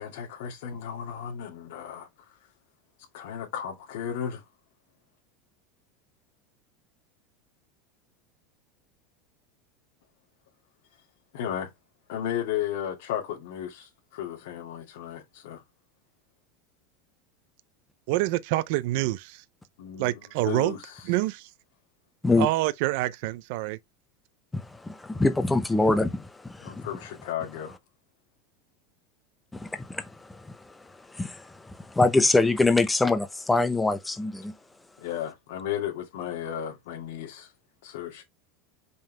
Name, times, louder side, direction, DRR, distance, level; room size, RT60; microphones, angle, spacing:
voice 1, 0.0-2.4 3.1-4.4 11.3-11.7 12.1-15.6 19.8-21.1 26.6-27.8 35.0-37.5 37.8-38.2, left 10 dB, 75° left, 2.2 m, -34 dB
voice 2, 18.1-19.4 20.0-20.7 21.1-21.5 22.4-23.8, right 17 dB, 60° right, 0.5 m, -26 dB
voice 3, 24.5-26.9 29.5-30.6 31.1-34.5, left 3 dB, 5° left, 0.8 m, -24 dB
5.5 x 5.4 x 3.4 m
supercardioid pair, 150°, 0 cm